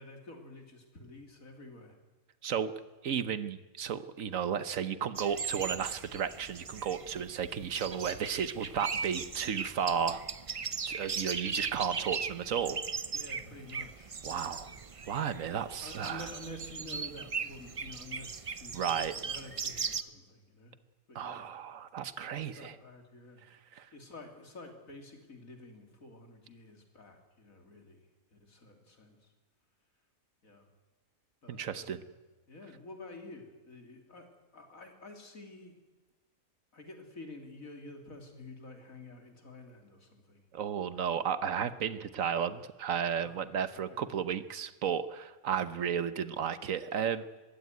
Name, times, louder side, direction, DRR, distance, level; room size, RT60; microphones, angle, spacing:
voice 1, 0.0-2.0 13.1-14.2 14.6-14.8 15.3-15.5 15.8-20.8 21.1-21.5 22.6-23.4 23.9-28.0 28.3-29.2 30.4-30.7 31.4-32.0 32.5-35.7 36.7-40.4 43.2-44.0 44.3-44.4, left 2 dB, 75° left, 4 dB, 3.5 m, -49 dB
voice 2, 2.4-2.7 3.0-10.2 10.9-12.8 14.2-14.7 15.1-16.3 18.7-19.2 21.1-22.8 23.7-23.9 31.5-32.0 40.5-47.4, right 8 dB, 70° right, 13 dB, 1.3 m, -33 dB
sound 1, 5.2-20.0, right 5 dB, 35° right, 0.6 m, -38 dB
21.5 x 16.0 x 9.4 m, 1.3 s
omnidirectional pair, 1.5 m